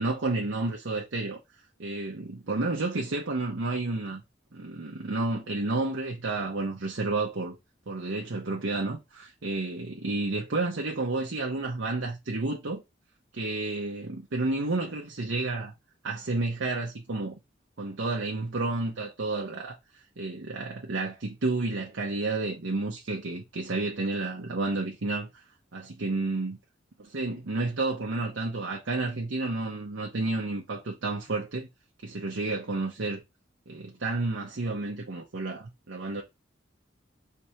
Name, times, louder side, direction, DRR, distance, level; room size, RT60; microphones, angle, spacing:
voice 1, 0.0-1.4 1.8-4.2 4.5-7.6 7.9-12.8 13.3-15.7 16.0-17.4 17.8-25.4 25.7-26.6 27.1-31.7 32.0-33.2 33.7-36.2, right 2 dB, 80° right, 0.8 m, -31 dB
4.6 x 3.4 x 2.8 m
head